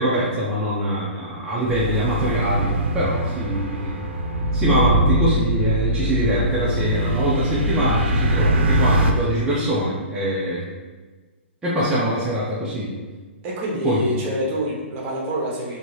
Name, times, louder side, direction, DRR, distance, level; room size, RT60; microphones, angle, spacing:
voice 1, 0.0-4.0 4.5-10.6 11.6-12.9 13.8-14.0, equal, 10° right, -9 dB, 0.5 m, -23 dB
sound 1, 1.7-9.1, right 1 dB, 70° right, 0.5 m, -22 dB
voice 2, 13.4-15.8, equal, 30° right, -3 dB, 0.9 m, -26 dB
2.7 x 2.7 x 3.1 m, 1.3 s
hypercardioid pair, 140°, 7 cm